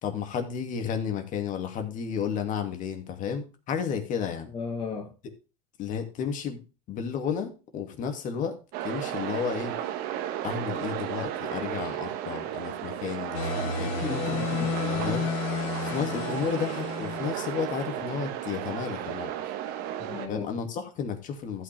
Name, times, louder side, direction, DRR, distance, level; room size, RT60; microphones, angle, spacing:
voice 1, 0.0-4.5 5.8-6.6 6.9-8.6 8.8-9.8 10.4-14.1 14.9-15.3 15.8-19.3 20.3-21.6, left 7 dB, 45° left, 2.6 m, -32 dB
voice 2, 4.5-5.1 14.0-14.8 20.0-20.5, left 5 dB, 25° left, 1.6 m, -35 dB
sound 1, 8.7-20.3, right 11 dB, 60° right, 1.4 m, -34 dB
sound 2, 13.3-17.8, left 5 dB, 70° left, 1.5 m, -32 dB
14.5 x 6.1 x 3.5 m
hypercardioid pair, 100°, 18 cm